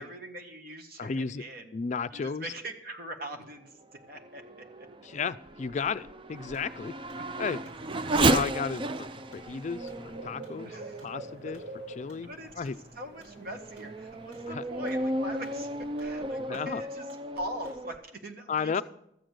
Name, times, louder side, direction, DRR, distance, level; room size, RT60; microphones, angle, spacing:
voice 1, 0.0-1.7 2.1-4.9 7.3-7.7 10.6-11.0 12.2-17.1 17.3-18.8, right 1 dB, 55° right, 5 dB, 1.6 m, -42 dB
voice 2, 1.0-1.4 1.7-2.5 5.0-6.9 7.4-7.6 8.1-10.7 11.0-12.3 12.6-12.8 14.5-14.6 16.5-16.8 18.5-18.8, left 5 dB, 40° left, 13 dB, 0.4 m, -33 dB
Race car auto racing / Accelerating revving vroom, 3.9-11.9 12.5-12.6 13.2-18.0, right 2 dB, 30° right, 0.4 m, -33 dB
sound 1, 6.3-16.4, right 1 dB, 70° right, 3.4 m, -49 dB
sound 2, 6.5-6.8 7.1-12.3 12.6-13.9 14.2-15.7 16.0-16.7 17.1-17.3 17.6-17.9, right 1 dB, 90° right, 6.3 m, -63 dB
13.5 x 7.7 x 6.5 m, 0.77 s
head